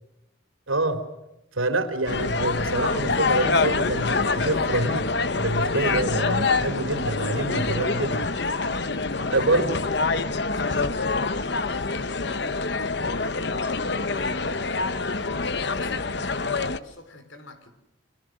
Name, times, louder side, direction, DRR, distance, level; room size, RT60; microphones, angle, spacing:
voice 1, 0.7-1.0 1.5-5.1 5.3-8.3 9.3-9.8, right 2 dB, 90° right, 3.6 m, -26 dB
sound 1, 2.1-16.8, left 3 dB, 55° left, 1.0 m, -26 dB
voice 2, 8.9-9.7 10.2-13.6 14.0-17.7, left 1 dB, 75° left, 4.3 m, -44 dB
29.0 x 26.5 x 6.5 m
head